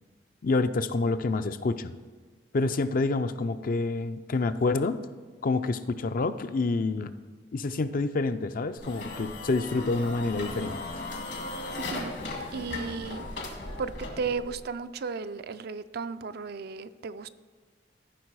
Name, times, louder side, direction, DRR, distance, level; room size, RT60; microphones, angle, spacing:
voice 1, 0.4-1.9 2.5-5.0 5.4-7.1 7.5-10.8, left 3 dB, 50° left, 11 dB, 0.5 m, -27 dB
sound 1, 8.8-14.6, left 2 dB, 75° left, 1.9 m, -37 dB
voice 2, 11.8-12.1 12.5-13.2 13.8-17.3, right 5 dB, 60° right, 12 dB, 0.4 m, -34 dB
14.0 x 5.9 x 4.7 m, 1.4 s
head